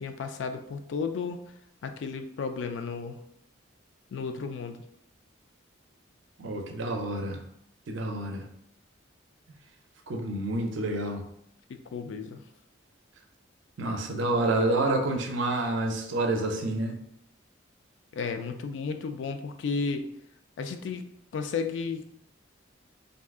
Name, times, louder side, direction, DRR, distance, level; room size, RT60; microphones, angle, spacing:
voice 1, 0.0-1.4 1.8-3.2 4.1-4.8 11.7-12.4 18.1-20.1 20.6-21.1 21.3-22.2, left 5 dB, 65° left, 7 dB, 0.3 m, -33 dB
voice 2, 6.4-7.4 7.9-8.4 10.1-11.3 13.8-17.0 20.6-20.7, right 2 dB, 70° right, 4 dB, 0.5 m, -28 dB
2.7 x 2.3 x 3.5 m, 0.74 s
head